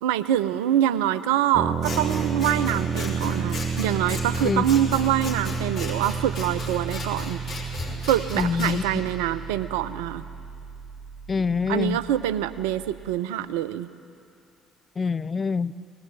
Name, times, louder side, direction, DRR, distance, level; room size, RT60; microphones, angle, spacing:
voice 1, 0.0-7.4 8.1-10.2 11.7-13.9 15.8-15.9, right 11 dB, 70° right, 14 dB, 0.6 m, -25 dB
sound 1, 1.5-13.2, right 6 dB, 50° right, 1.0 m, -31 dB
Scissors, 1.8-8.8, left 3 dB, 50° left, 5.6 m, -36 dB
voice 2, 8.4-8.8 11.3-12.0 15.0-15.7, left 5 dB, 35° left, 15 dB, 0.5 m, -25 dB
20.5 x 19.5 x 9.1 m, 2.5 s
figure-of-eight pair, 50°, 0 cm